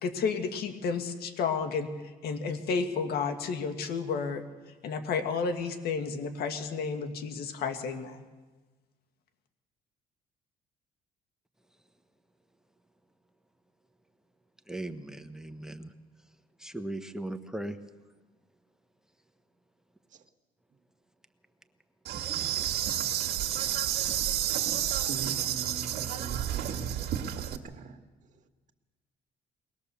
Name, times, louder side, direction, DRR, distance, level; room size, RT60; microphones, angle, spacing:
voice 1, 0.0-4.4 4.8-8.2, left 5 dB, 70° left, 1.9 m, -31 dB
voice 2, 14.7-15.9 16.6-17.8, right 1 dB, 5° right, 1.1 m, -38 dB
Insect, 22.1-27.6, right 11 dB, 70° right, 1.8 m, -30 dB
voice 3, 25.0-28.0, right 4 dB, 45° right, 1.9 m, -42 dB
23.0 x 19.5 x 7.0 m
cardioid pair, 110°, 17 cm